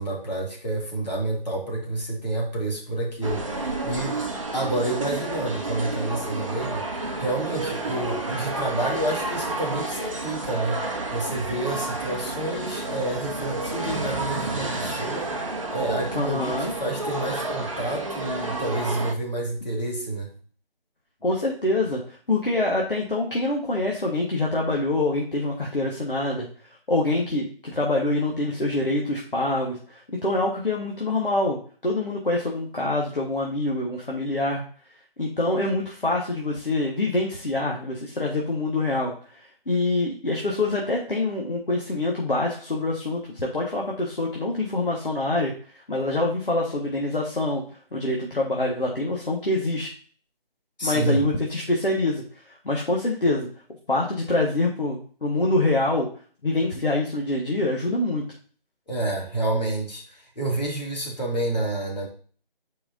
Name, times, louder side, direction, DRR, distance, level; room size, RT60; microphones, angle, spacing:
voice 1, 0.0-4.2 4.5-10.8 11.1-20.3 50.8-51.2 58.9-62.1, right 2 dB, 45° left, -2 dB, 2.4 m, -29 dB
sound 1, 3.2-19.1, right 2 dB, 35° right, 0.8 m, -30 dB
voice 2, 16.1-16.7 21.2-26.5 26.9-31.6 31.8-34.6 35.2-47.6 47.9-49.9 50.8-53.5 53.9-56.1 56.4-58.2, left 2 dB, 65° left, -2 dB, 1.6 m, -25 dB
10.0 x 4.8 x 2.7 m, 0.42 s
figure-of-eight pair, 160°, 29 cm